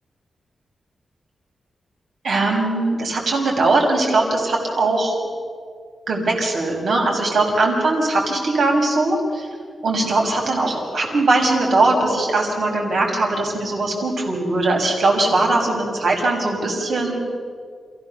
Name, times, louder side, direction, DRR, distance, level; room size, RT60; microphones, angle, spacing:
voice 1, 2.2-5.2 6.1-9.5 9.8-17.2, right 2 dB, 65° right, 0 dB, 5.6 m, -20 dB
28.5 x 16.0 x 7.0 m, 2.1 s
wide cardioid pair, 145°, 0 cm